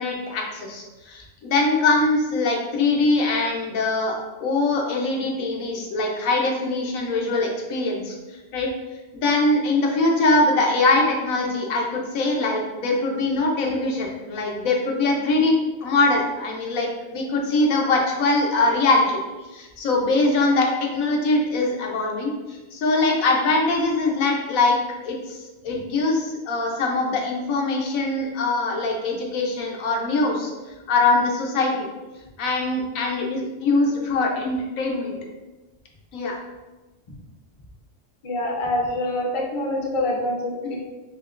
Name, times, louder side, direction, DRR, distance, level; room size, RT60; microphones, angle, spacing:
voice 1, 0.0-8.1 8.5-8.7 9.2-15.5 15.8-19.2 19.5-24.8 25.0-25.4 25.6-30.5 30.9-31.9 32.4-35.1 36.1-36.4 40.6-40.8, left 2 dB, 90° left, 0 dB, 1.1 m, -22 dB
voice 2, 38.2-40.8, left 1 dB, 40° left, -1 dB, 0.4 m, -25 dB
5.7 x 2.2 x 2.4 m, 1.2 s
omnidirectional pair, 1.4 m